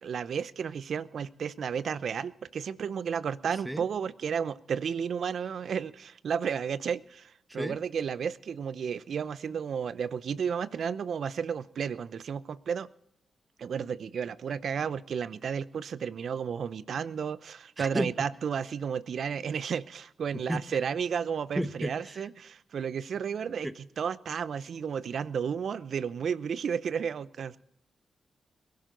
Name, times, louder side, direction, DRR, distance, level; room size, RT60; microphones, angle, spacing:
voice 1, 0.0-12.9 13.6-27.6, right 7 dB, 70° right, 0.6 m, -32 dB
voice 2, 17.8-18.1 20.5-20.6 21.6-22.3 23.6-23.7, equal, 10° right, 1.3 m, -32 dB
21.5 x 11.5 x 3.9 m
supercardioid pair, 45°, 0 cm